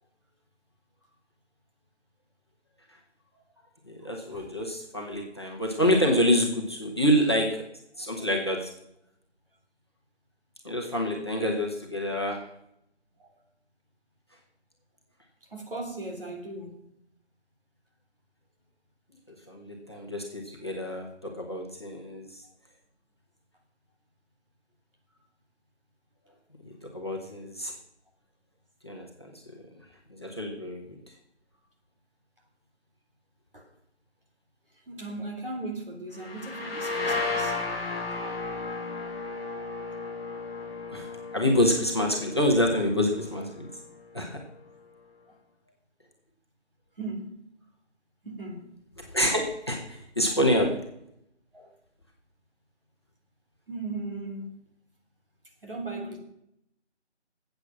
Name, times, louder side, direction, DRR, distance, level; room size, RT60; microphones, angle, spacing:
voice 1, 3.9-7.6 8.0-8.7 10.6-12.4 19.5-22.4 26.9-27.7 28.8-29.3 30.2-31.0 40.9-43.7 44.1-44.4 49.1-50.8, equal, 25° left, 0 dB, 1.4 m, -27 dB
voice 2, 15.5-16.9 33.5-33.7 34.9-37.6 45.3-45.4 47.0-47.4 48.2-48.8 50.3-50.4 51.5-51.7 53.7-54.5 55.6-56.2, right 2 dB, 50° right, 2 dB, 3.6 m, -37 dB
rev verb guit chord, 36.1-43.7, left 3 dB, ahead, 2.9 m, -34 dB
14.5 x 8.1 x 6.1 m, 0.77 s
figure-of-eight pair, 180°, 34 cm